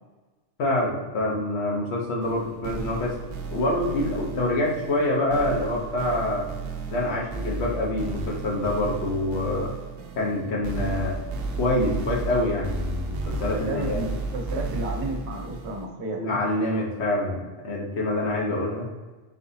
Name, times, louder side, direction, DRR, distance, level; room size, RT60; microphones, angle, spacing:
voice 1, 0.6-3.1 3.5-6.4 6.9-9.7 10.2-11.2 11.6-14.0 16.1-18.9, left 1 dB, 80° left, -2 dB, 1.2 m, -26 dB
sound 1, 2.2-15.9, right 3 dB, 70° right, 0.8 m, -33 dB
voice 2, 13.5-16.4 18.4-18.5, right 1 dB, 85° right, 0 dB, 1.1 m, -33 dB
3.9 x 3.8 x 2.7 m, 1.2 s
omnidirectional pair, 1.1 m